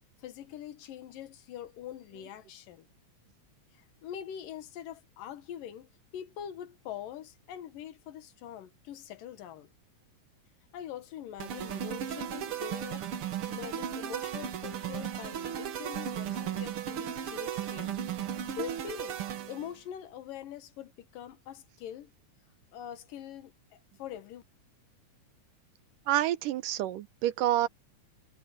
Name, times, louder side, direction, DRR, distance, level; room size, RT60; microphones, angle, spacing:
voice 1, 0.2-2.9 3.7-9.7 10.7-13.1 13.5-17.9 18.6-22.1 22.7-24.4, left 10 dB, 85° left, 3.0 m, -44 dB
sound 1, 11.4-19.7, right 9 dB, 55° right, 1.7 m, -36 dB
voice 2, 26.1-27.7, right 13 dB, 85° right, 2.5 m, -28 dB
omnidirectional pair, 3.8 m